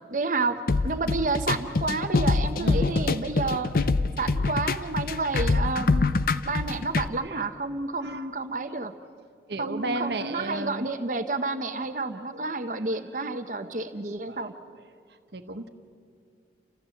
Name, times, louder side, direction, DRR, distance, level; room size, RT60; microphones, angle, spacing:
voice 1, 0.1-3.7 4.2-6.2 6.4-8.9 9.6-14.5, right 3 dB, 45° right, 8 dB, 0.8 m, -30 dB
sound 1, 0.7-7.1, left 3 dB, 55° left, 0.6 m, -25 dB
voice 2, 2.6-3.9 7.1-7.5 8.0-8.3 9.5-10.9 12.1-12.4 13.6-13.9 14.3-14.4 15.3-15.7, right 2 dB, 70° right, 7 dB, 1.2 m, -35 dB
30.0 x 14.5 x 7.7 m, 2.2 s
head